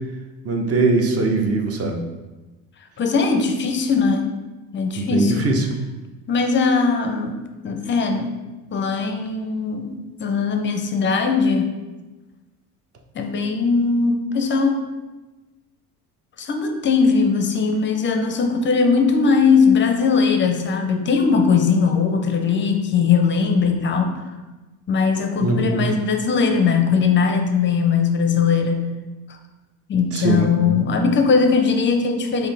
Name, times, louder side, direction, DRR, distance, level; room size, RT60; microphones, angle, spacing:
voice 1, 0.4-2.0 5.0-5.7 25.4-25.9 30.1-30.5, right 3 dB, 35° right, 3 dB, 0.7 m, -20 dB
voice 2, 3.0-4.3 4.7-5.4 6.3-8.3 8.7-9.9 10.2-11.7 13.2-14.8 16.4-24.2 24.9-28.9 29.9-32.5, left 5 dB, 25° left, 5 dB, 0.5 m, -19 dB
5.3 x 2.0 x 3.3 m, 1.2 s
hypercardioid pair, 75°, 44 cm